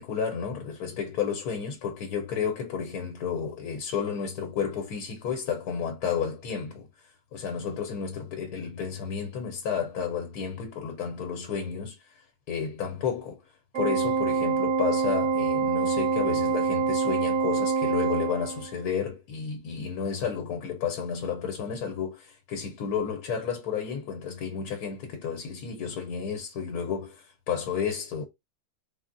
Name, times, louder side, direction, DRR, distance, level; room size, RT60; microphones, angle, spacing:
voice 1, 0.0-6.9 7.3-13.4 13.7-28.2, left 7 dB, 85° left, 1.1 m, -32 dB
Organ, 13.7-18.8, right 5 dB, 70° right, 1.5 m, -26 dB
3.5 x 2.0 x 2.5 m
omnidirectional pair, 1.6 m